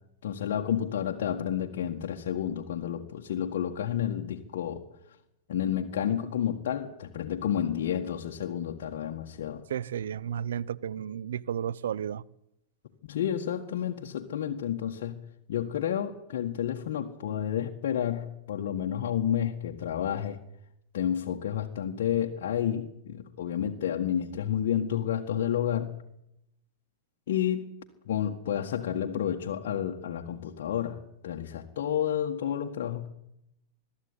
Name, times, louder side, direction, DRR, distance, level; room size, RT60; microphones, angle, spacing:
voice 1, 0.2-4.8 5.5-9.6 13.1-15.2 15.5-20.4 20.9-25.9 27.3-27.7 28.1-33.1, left 9 dB, 75° left, -1 dB, 1.8 m, -30 dB
voice 2, 9.7-12.2, right 9 dB, 85° right, 21 dB, 0.7 m, -33 dB
21.5 x 13.5 x 9.9 m, 0.82 s
hypercardioid pair, 115°, 0 cm